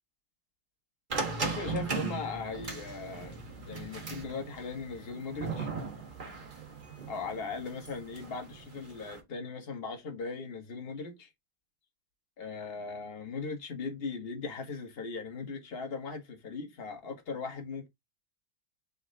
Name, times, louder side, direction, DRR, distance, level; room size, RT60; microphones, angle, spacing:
sound 1, 1.1-9.2, right 4 dB, 30° right, 1.2 m, -38 dB
voice 1, 1.4-5.7 7.1-11.3 12.4-17.9, left 4 dB, 35° left, 1.2 m, -39 dB
4.2 x 2.9 x 3.8 m
omnidirectional pair, 2.1 m